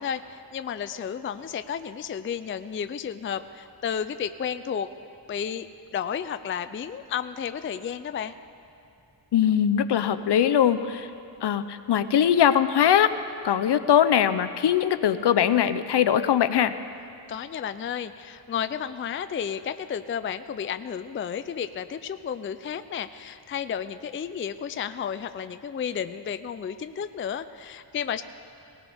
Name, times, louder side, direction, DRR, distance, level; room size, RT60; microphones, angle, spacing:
voice 1, 0.0-4.9 5.3-5.7 5.9-8.3 17.3-28.2, left 8 dB, 30° left, 11 dB, 0.4 m, -32 dB
voice 2, 9.3-11.1 11.4-13.1 13.4-16.7, left 9 dB, 65° left, 11 dB, 0.7 m, -21 dB
19.0 x 18.0 x 3.5 m, 2.7 s
wide cardioid pair, 130°, 43 cm